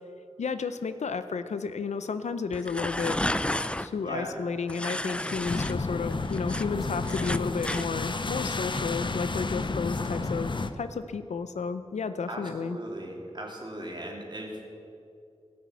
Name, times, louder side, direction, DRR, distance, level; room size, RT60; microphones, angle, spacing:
voice 1, 0.4-3.2 3.8-12.8, left 5 dB, 85° left, 11 dB, 0.6 m, -32 dB
sound 1, 2.5-3.9 4.7-5.7 6.1-7.9, left 1 dB, 10° left, 0.4 m, -31 dB
voice 2, 4.0-4.3 12.3-14.6, right 1 dB, 40° right, -1 dB, 2.9 m, -38 dB
sound 2, 5.5-10.7, left 3 dB, 45° left, 0.7 m, -31 dB
16.5 x 6.5 x 8.2 m, 2.5 s
cardioid pair, 50°, 11 cm